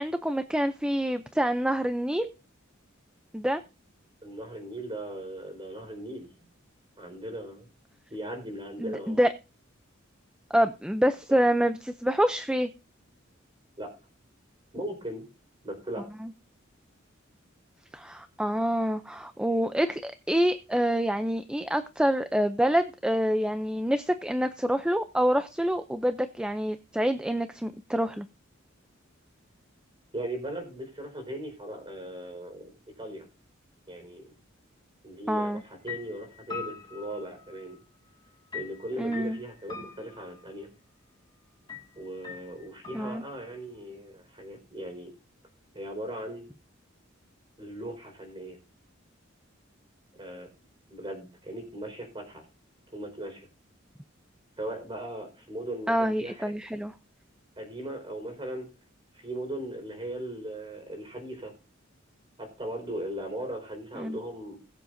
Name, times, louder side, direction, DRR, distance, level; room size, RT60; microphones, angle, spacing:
voice 1, 0.0-2.3 3.3-3.6 8.8-9.3 10.5-12.7 16.2-16.3 17.9-28.3 35.3-35.6 39.0-39.4 42.9-43.2 55.9-56.9 64.0-64.2, equal, 5° right, 9 dB, 0.4 m, -27 dB
voice 2, 4.2-6.3 7.0-7.7 8.1-9.2 13.8-13.9 14.7-15.2 15.6-16.0 30.1-32.7 33.0-33.2 33.9-34.2 35.0-37.8 38.5-40.7 41.9-45.1 45.7-46.5 47.6-48.6 50.2-50.5 50.9-52.4 52.9-53.5 54.6-56.5 57.6-58.7 59.1-61.5 62.4-64.6, right 1 dB, 25° right, 3 dB, 4.6 m, -38 dB
sound 1, 35.4-35.6 35.9-37.7 38.5-40.6 41.7-41.9 42.2-43.6, left 6 dB, 20° left, 2.0 m, -42 dB
21.5 x 7.5 x 2.6 m, 0.31 s
head